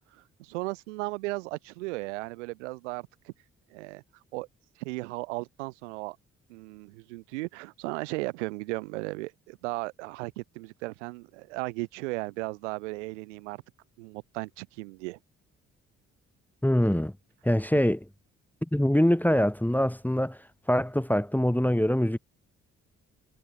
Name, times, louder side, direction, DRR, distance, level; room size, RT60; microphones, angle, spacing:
voice 1, 0.4-3.3 3.7-4.0 4.3-4.5 4.8-6.2 6.5-13.6 14.0-15.2, right 23 dB, 85° right, 4.4 m, -36 dB
voice 2, 16.6-17.1 17.4-18.0 18.7-20.4 20.7-22.2, equal, 5° left, 1.5 m, -24 dB
hypercardioid pair, 45°, 35 cm